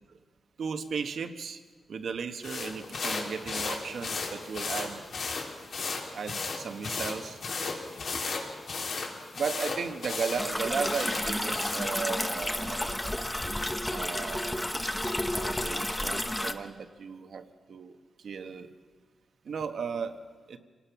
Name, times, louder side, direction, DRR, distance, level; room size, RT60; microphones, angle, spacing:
voice 1, 0.6-1.6 1.9-5.0 6.1-7.4 9.3-13.2 13.9-14.7 15.3-18.7 19.4-20.2 20.5-20.6, right 6 dB, 60° right, 8 dB, 1.3 m, -35 dB
sound 1, 2.4-11.9, left 4 dB, 65° left, 3.7 m, -35 dB
sound 2, 10.4-16.5, left 1 dB, 10° left, 0.9 m, -31 dB
27.5 x 18.5 x 6.0 m, 1.4 s
wide cardioid pair, 165°, 0 cm